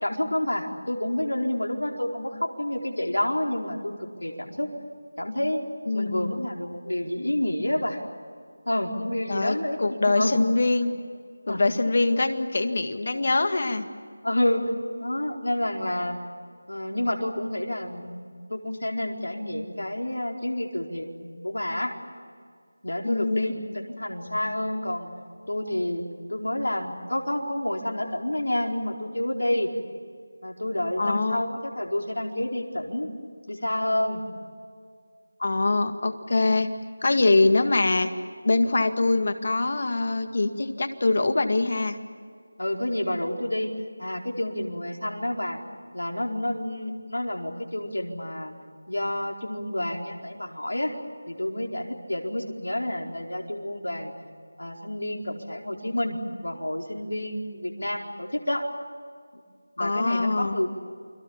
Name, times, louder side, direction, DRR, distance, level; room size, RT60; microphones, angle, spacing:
voice 1, 0.0-4.7 5.2-5.6 5.9-8.0 8.7-10.4 11.5-11.7 14.2-14.6 15.0-16.2 16.7-21.9 22.8-25.1 25.5-26.0 26.3-29.7 30.4-33.1 33.5-34.2 42.6-43.7 44.0-45.6 45.9-48.5 48.9-50.9 51.3-54.1 54.6-58.6 59.8-60.7, left 1 dB, 90° left, 1 dB, 4.5 m, -29 dB
voice 2, 5.9-6.4 9.3-10.9 11.5-13.8 23.0-23.5 31.0-31.4 35.4-36.7 37.0-38.1 38.4-42.0 59.8-60.6, left 2 dB, 45° left, 8 dB, 2.0 m, -23 dB
29.0 x 23.0 x 7.3 m, 2.1 s
figure-of-eight pair, 170°, 0 cm